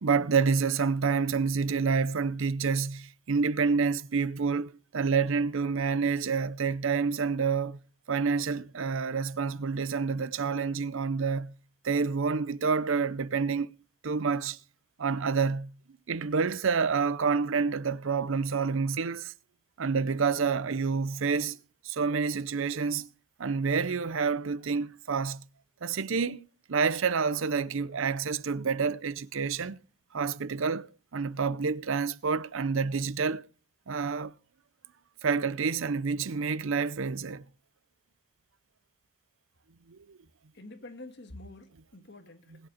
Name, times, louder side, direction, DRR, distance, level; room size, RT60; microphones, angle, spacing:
voice 1, 0.0-7.8 8.1-11.5 11.8-13.7 14.0-14.6 15.0-15.7 16.1-19.3 19.8-21.6 21.8-23.1 23.4-25.4 25.8-29.8 30.1-33.5 33.9-34.3 35.2-37.4 39.9-40.2, right 5 dB, 65° right, 0.6 m, -28 dB
voice 2, 40.5-42.7, left 2 dB, 50° left, 1.7 m, -47 dB
20.0 x 8.1 x 4.3 m
head